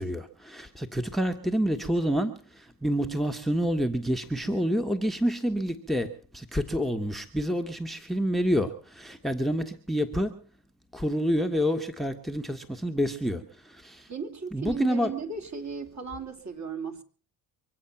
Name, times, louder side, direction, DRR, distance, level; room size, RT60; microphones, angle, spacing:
voice 1, 0.0-10.3 10.9-13.4 13.7-14.1 14.5-15.2, equal, ahead, 8 dB, 1.5 m, -28 dB
voice 2, 14.1-17.0, right 5 dB, 35° right, 4 dB, 3.1 m, -36 dB
24.5 x 8.5 x 5.9 m, 0.43 s
hypercardioid pair, 55°, 48 cm